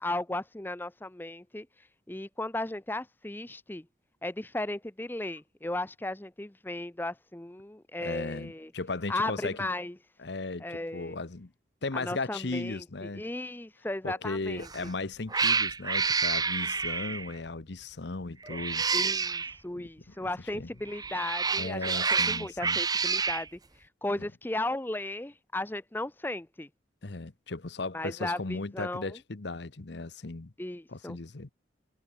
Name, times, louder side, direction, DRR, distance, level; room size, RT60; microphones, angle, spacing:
voice 1, 0.0-1.7 2.1-3.9 4.2-8.7 9.1-9.9 10.6-11.2 11.9-14.9 18.9-26.7 27.9-29.1 30.6-31.2, left 2 dB, 10° left, 0.6 m, -36 dB
voice 2, 8.0-9.7 10.2-11.5 11.8-13.2 14.0-18.8 19.7-19.9 20.2-20.7 21.6-22.8 24.2-24.3 27.0-30.5 30.9-31.5, left 3 dB, 65° left, 1.0 m, -36 dB
Cat, 14.6-14.9 15.3-17.3 18.4-19.5 20.9-23.5, right 5 dB, 20° right, 1.1 m, -28 dB
head